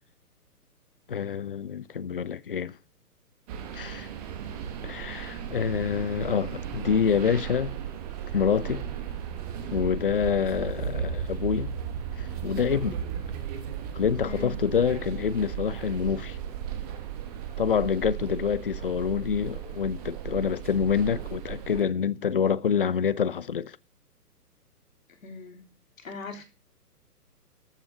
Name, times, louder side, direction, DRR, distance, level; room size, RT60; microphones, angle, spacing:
voice 1, 1.1-2.7 3.7-4.1 4.8-7.7 8.3-8.8 9.7-11.7 12.2-13.0 13.9-16.4 17.6-23.8, left 7 dB, 35° left, 0.5 m, -27 dB
sound 1, 3.5-21.8, right 9 dB, 25° right, 1.5 m, -35 dB
voice 2, 14.2-14.5 17.5-17.6 25.2-26.4, left 4 dB, 55° left, 3.7 m, -41 dB
14.0 x 6.9 x 6.0 m
figure-of-eight pair, 130°, 47 cm